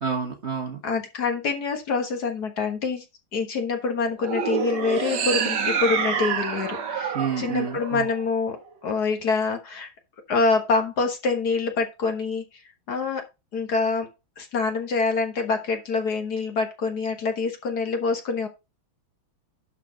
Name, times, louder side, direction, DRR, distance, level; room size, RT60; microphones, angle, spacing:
voice 1, 0.0-0.8 7.1-8.1, right 6 dB, 40° right, 3 dB, 1.2 m, -29 dB
voice 2, 0.8-3.0 3.3-8.6 8.8-9.9 10.3-12.4 12.9-13.2 13.5-14.1 14.4-18.5, left 4 dB, 55° left, 5 dB, 1.7 m, -26 dB
sound 1, 4.2-8.6, right 6 dB, 60° right, 1.7 m, -27 dB
11.5 x 4.2 x 5.0 m, 0.26 s
omnidirectional pair, 2.3 m